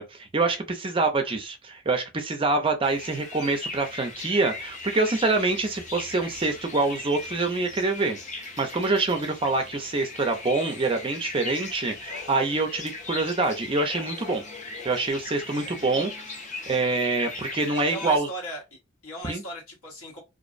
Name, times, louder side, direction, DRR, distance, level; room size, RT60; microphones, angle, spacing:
voice 1, 0.0-14.4 14.8-16.4 16.7-18.3 19.2-19.4, right 3 dB, 25° right, 0.4 m, -26 dB
sound 1, 2.8-18.2, left 3 dB, 35° left, 0.5 m, -38 dB
voice 2, 17.8-20.2, equal, 80° left, 1.2 m, -38 dB
2.5 x 2.0 x 2.4 m
head